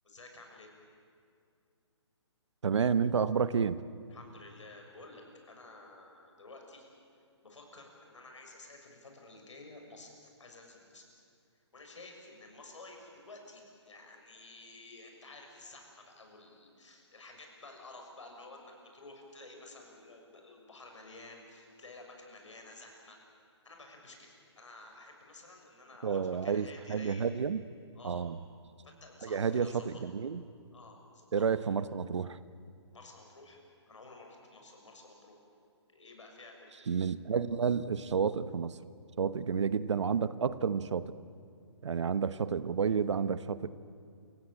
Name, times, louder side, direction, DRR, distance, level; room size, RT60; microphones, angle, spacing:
voice 1, 0.0-0.8 4.1-6.8 7.4-11.0 11.7-23.2 23.6-24.3 24.5-27.3 27.9-28.2 28.8-29.9 30.7-31.4 32.9-33.6 33.9-35.3 35.9-36.7, left 2 dB, 85° left, 2 dB, 6.7 m, -52 dB
voice 2, 2.6-3.8 26.0-27.6 28.0-28.4 29.2-30.4 31.3-32.4 36.9-38.8 39.2-41.1 41.8-43.7, right 6 dB, 75° right, 14 dB, 1.1 m, -30 dB
29.0 x 17.0 x 8.9 m, 2.4 s
hypercardioid pair, 150°, 15 cm